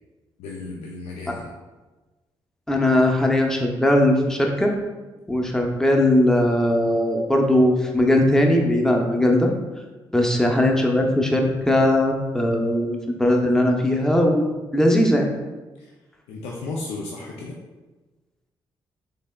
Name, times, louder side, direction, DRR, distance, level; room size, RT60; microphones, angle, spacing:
voice 1, 0.4-1.5 15.8-15.9 16.3-17.6, left 3 dB, 85° left, -2 dB, 0.4 m, -34 dB
voice 2, 2.7-4.7 5.3-9.5 10.1-15.3, left 1 dB, 5° left, 1 dB, 0.6 m, -19 dB
3.5 x 3.3 x 2.2 m, 1.2 s
supercardioid pair, 50°, 10 cm